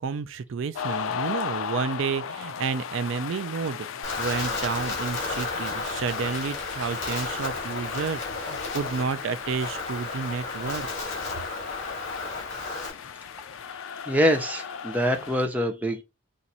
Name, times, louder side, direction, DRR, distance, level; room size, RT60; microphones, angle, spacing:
voice 1, 0.0-3.9 4.2-10.9, right 5 dB, 75° right, 0.4 m, -30 dB
sound 1, 0.7-15.5, left 7 dB, 85° left, 0.4 m, -36 dB
Wind, 4.0-12.9, left 3 dB, 65° left, 2.4 m, -33 dB
voice 2, 14.0-16.0, equal, 10° right, 0.6 m, -24 dB
4.3 x 2.5 x 4.0 m
head